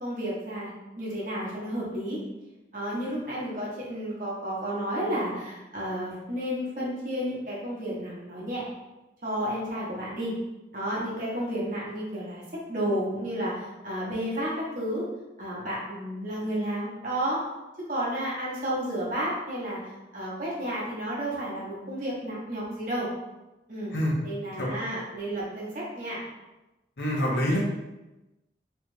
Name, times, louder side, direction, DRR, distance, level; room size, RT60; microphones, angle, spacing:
voice 1, 0.0-2.2 2.7-8.6 9.2-10.3 10.7-12.4 12.7-15.1 15.4-17.4 17.9-19.8 20.1-23.1 23.7-23.9 24.2-26.2, equal, 45° right, -7 dB, 1.1 m, -31 dB
voice 2, 27.0-27.6, equal, 65° left, -4 dB, 0.8 m, -26 dB
3.1 x 2.5 x 3.2 m, 1.0 s
head